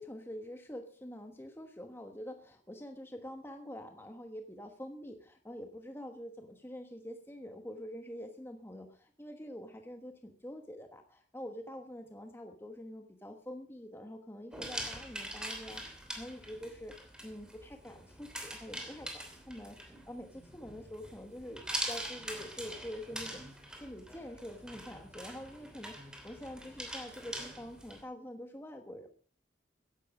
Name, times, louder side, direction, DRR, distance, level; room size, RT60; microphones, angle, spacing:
voice 1, 0.0-16.9 17.2-29.1, equal, 15° left, 4 dB, 1.2 m, -46 dB
sound 1, 14.5-28.0, right 1 dB, 5° right, 2.9 m, -43 dB
15.5 x 11.0 x 4.9 m, 0.42 s
head